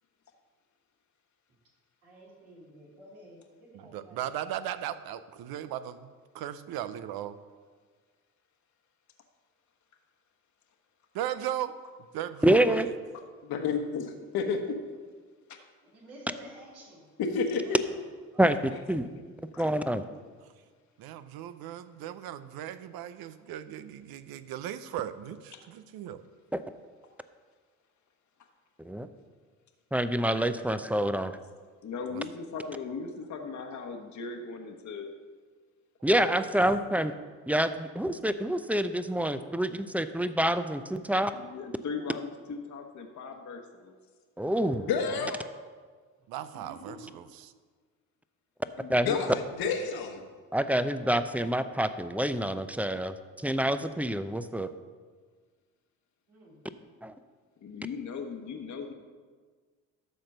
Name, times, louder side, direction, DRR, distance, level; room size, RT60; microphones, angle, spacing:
voice 1, 2.0-4.2 15.9-17.0 17.4-17.8 18.3-18.5 47.0-47.1 56.3-56.6, equal, 90° right, -5 dB, 3.4 m, -50 dB
voice 2, 3.7-7.3 11.1-11.7 12.1-12.9 21.0-26.2 32.1-32.2 45.1-45.3 46.3-47.5, right 11 dB, 70° right, 13 dB, 0.7 m, -37 dB
voice 3, 12.4-12.9 18.4-19.1 19.6-20.0 26.5-26.6 28.8-29.1 29.9-31.4 36.0-37.1 37.5-41.3 44.4-44.9 48.9-49.1 50.5-54.7 57.0-57.1, right 1 dB, 5° right, 11 dB, 0.6 m, -27 dB
voice 4, 13.4-14.6 17.2-17.6 44.9-45.4 48.8-50.2, left 5 dB, 70° left, 5 dB, 1.4 m, -30 dB
voice 5, 31.8-35.1 41.3-44.0 57.6-58.9, left 4 dB, 45° left, 4 dB, 1.2 m, -38 dB
12.5 x 4.3 x 6.6 m, 1.5 s
supercardioid pair, 60°, 38 cm